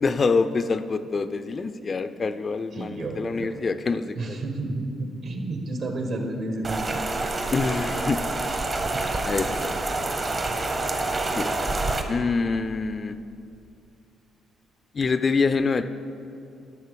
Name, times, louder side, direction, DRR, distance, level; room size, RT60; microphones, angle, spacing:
voice 1, 0.0-4.4 7.5-8.2 9.2-9.8 11.4-11.5 12.1-13.1 14.9-15.8, left 4 dB, 40° left, 11 dB, 0.4 m, -25 dB
voice 2, 2.7-3.5 4.1-7.0, right 2 dB, 60° right, 4 dB, 1.4 m, -31 dB
Rain, 6.6-12.0, right 2 dB, 35° right, 0.9 m, -27 dB
12.0 x 6.5 x 5.1 m, 2.6 s
cardioid pair, 90°, 0 cm